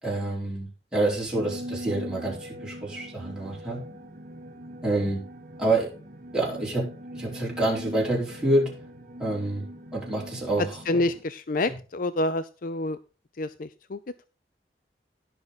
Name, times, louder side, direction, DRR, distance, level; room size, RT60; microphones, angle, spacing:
voice 1, 0.0-3.9 4.8-5.2 5.6-5.9 6.3-8.8 9.2-9.7 9.9-11.0 11.7-11.8, right 2 dB, 5° right, -5 dB, 4.5 m, -27 dB
sound 1, 1.3-11.2, equal, 50° right, 1.4 m, -41 dB
voice 2, 10.9-13.0 13.4-14.0, left 2 dB, 50° left, 14 dB, 0.5 m, -28 dB
17.0 x 6.0 x 4.1 m, 0.34 s
head